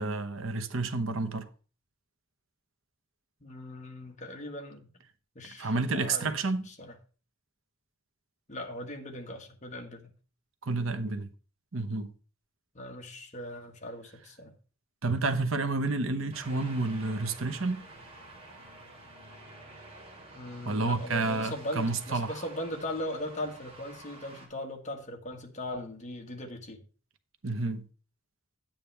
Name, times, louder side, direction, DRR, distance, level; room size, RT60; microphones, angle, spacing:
voice 1, 0.0-1.5 5.6-6.6 10.6-11.3 11.7-12.1 15.0-17.8 20.6-22.3 27.4-27.8, right 3 dB, 65° right, 1.0 m, -30 dB
voice 2, 3.4-4.9 5.3-6.3 6.6-6.9 8.5-10.1 12.7-14.5 20.3-26.8, left 1 dB, 35° left, 1.5 m, -39 dB
sound 1, 16.3-24.5, right 2 dB, 25° right, 2.5 m, -49 dB
9.9 x 8.8 x 3.4 m
head